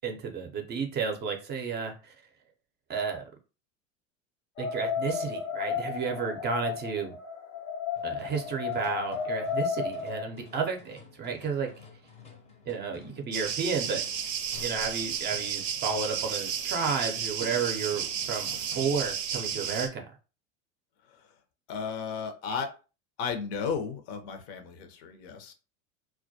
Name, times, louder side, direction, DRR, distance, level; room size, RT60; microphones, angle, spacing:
voice 1, 0.0-2.1 2.9-3.2 4.6-7.2 8.0-11.7 12.7-14.0 14.6-18.5 18.8-20.1, right 5 dB, 25° right, 3 dB, 0.5 m, -32 dB
sound 1, 4.6-10.3, left 6 dB, 85° left, 1.1 m, -33 dB
sound 2, 8.0-19.2, left 4 dB, 15° left, 0.6 m, -52 dB
voice 2, 12.9-13.2 21.1-21.3 21.7-22.7 23.2-25.5, left 6 dB, 55° left, 7 dB, 0.6 m, -34 dB
sound 3, 13.3-19.9, right 8 dB, 85° right, 0.5 m, -33 dB
2.2 x 2.1 x 2.6 m, 0.33 s
hypercardioid pair, 90°, 38 cm